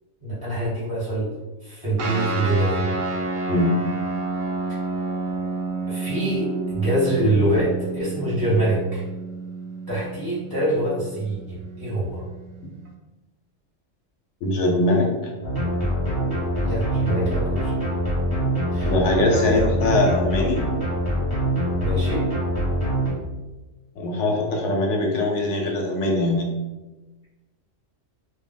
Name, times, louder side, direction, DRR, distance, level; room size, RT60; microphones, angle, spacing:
voice 1, 0.2-1.3 1.6-2.9 5.9-9.0 9.9-12.2 16.6-17.7 18.7-18.9 21.8-22.3, right 1 dB, 20° right, -8 dB, 0.9 m, -24 dB
sound 1, 2.0-12.9, right 3 dB, 65° right, 0.8 m, -30 dB
voice 2, 14.4-15.3 18.8-20.6 24.0-26.5, left 2 dB, 75° left, 0 dB, 0.9 m, -22 dB
sound 2, 15.4-23.1, right 1 dB, 20° left, 0.9 m, -24 dB
2.2 x 2.1 x 3.7 m, 1.1 s
omnidirectional pair, 1.3 m